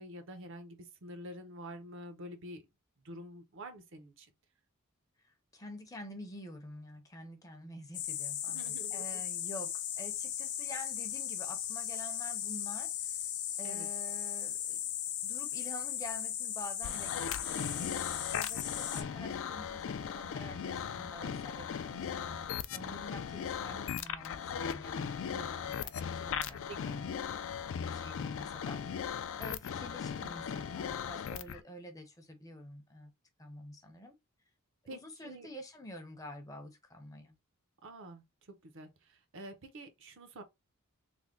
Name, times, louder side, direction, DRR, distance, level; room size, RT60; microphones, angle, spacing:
voice 1, 0.0-2.7 3.0-4.3 8.5-9.2 13.6-13.9 26.7-26.8 34.9-35.5 37.8-40.4, right 1 dB, 60° right, 0.7 m, -48 dB
voice 2, 5.2-13.3 13.6-14.9 15.2-22.4 22.7-27.1 27.9-33.1 33.4-34.1 34.9-37.4, left 1 dB, 15° left, 0.6 m, -48 dB
sound 1, 7.9-19.0, left 10 dB, 85° left, 0.7 m, -37 dB
sound 2, 16.8-31.6, left 7 dB, 60° left, 0.3 m, -38 dB
3.4 x 2.1 x 3.7 m
head